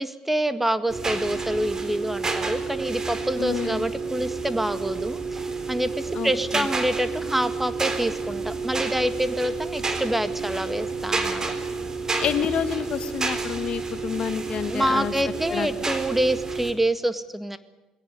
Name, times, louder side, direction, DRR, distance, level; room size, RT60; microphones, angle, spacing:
voice 1, 0.0-11.4 14.6-17.6, right 1 dB, 10° right, 12 dB, 1.8 m, -26 dB
sound 1, 0.9-16.7, right 4 dB, 30° right, 3.9 m, -30 dB
voice 2, 3.4-3.9 6.1-6.7 12.2-15.1 15.5-15.7, left 8 dB, 50° left, 12 dB, 1.5 m, -28 dB
22.0 x 17.0 x 9.7 m, 1.1 s
hypercardioid pair, 60°, 2 cm